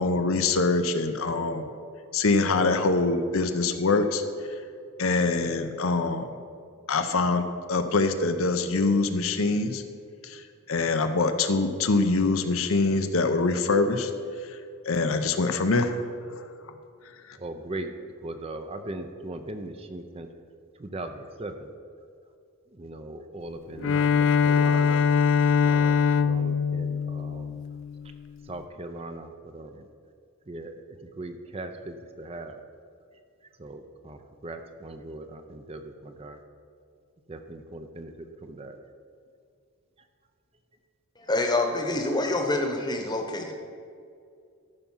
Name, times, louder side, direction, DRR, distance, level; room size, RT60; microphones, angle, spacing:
voice 1, 0.0-1.7 2.1-4.2 5.0-6.3 6.9-9.8 10.2-10.4 10.7-14.1 14.5-14.6 14.9-16.0 17.3-17.4, left 3 dB, 75° left, 8 dB, 0.7 m, -24 dB
voice 2, 17.4-17.9 18.2-20.3 20.8-21.7 22.7-25.1 25.6-27.6 28.4-29.9 30.5-30.7 31.0-32.6 33.6-36.4 37.3-38.8, right 2 dB, 25° right, 7 dB, 0.5 m, -39 dB
Bowed string instrument, 23.8-28.1, left 6 dB, 60° left, 0.3 m, -23 dB
voice 3, 41.2-43.5, left 2 dB, 20° left, 3 dB, 1.0 m, -26 dB
14.0 x 5.7 x 5.6 m, 2.3 s
head